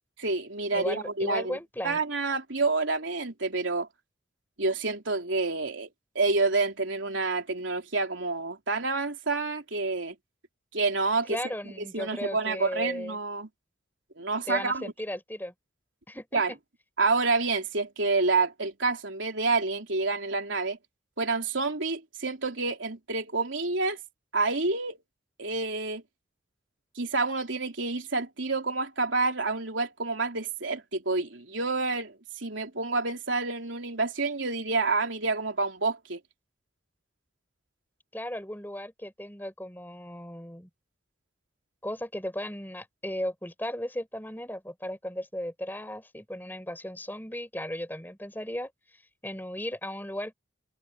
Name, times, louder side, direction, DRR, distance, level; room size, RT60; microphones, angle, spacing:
voice 1, 0.2-1.6 1.8-3.9 4.6-5.9 6.2-10.2 10.7-11.4 11.9-13.5 14.2-14.9 16.3-16.5 17.0-20.8 21.2-24.0 24.3-25.0 25.4-26.0 27.0-36.2, right 3 dB, 80° right, 3.5 m, -28 dB
voice 2, 0.7-2.0 11.3-13.2 14.5-15.5 16.1-16.4 38.1-40.7 41.8-48.7 49.2-50.3, left 1 dB, 10° left, 4.7 m, -36 dB
head